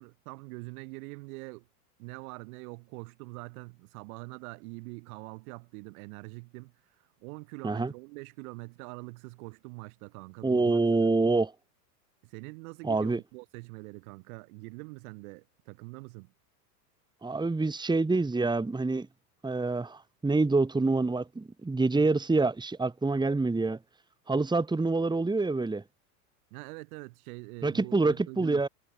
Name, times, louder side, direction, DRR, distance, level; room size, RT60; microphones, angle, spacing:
voice 1, 0.0-1.7 2.0-10.8 12.2-16.3 26.5-28.6, right 28 dB, 60° right, 5.2 m, -44 dB
voice 2, 10.4-11.5 12.8-13.2 17.2-19.1 19.4-23.8 24.3-25.8 27.6-28.7, right 3 dB, 10° right, 2.6 m, -26 dB
hypercardioid pair, 100°, 47 cm